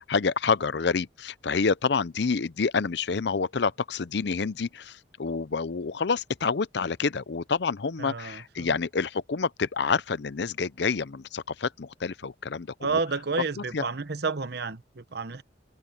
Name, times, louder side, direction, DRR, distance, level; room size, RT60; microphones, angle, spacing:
voice 1, 0.0-13.0 13.7-13.8, left 5 dB, 60° left, 0.6 m, -28 dB
voice 2, 8.0-8.7 12.8-15.4, right 4 dB, 55° right, 0.9 m, -30 dB
head